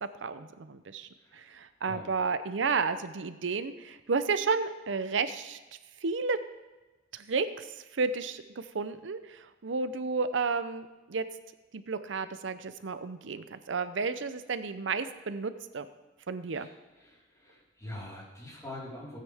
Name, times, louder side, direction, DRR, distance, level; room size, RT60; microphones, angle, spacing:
voice 1, 0.0-5.6 6.0-6.4 7.1-11.2 11.7-15.9 16.3-16.7, right 4 dB, 80° right, 12 dB, 0.6 m, -32 dB
voice 2, 17.4-19.2, left 1 dB, 20° left, -6 dB, 4.2 m, -43 dB
16.5 x 9.3 x 3.5 m, 1.2 s
head